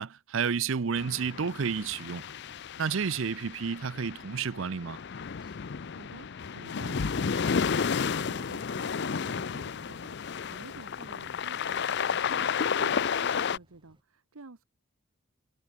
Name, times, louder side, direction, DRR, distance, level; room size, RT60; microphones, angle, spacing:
voice 1, 0.0-2.2 2.8-5.0, right 6 dB, 60° right, 0.5 m, -31 dB
sound 1, 1.0-13.6, left 6 dB, 50° left, 0.5 m, -32 dB
sound 2, 1.6-14.0, right 1 dB, 25° right, 3.7 m, -65 dB
voice 2, 5.9-14.6, right 3 dB, 80° right, 1.1 m, -50 dB
head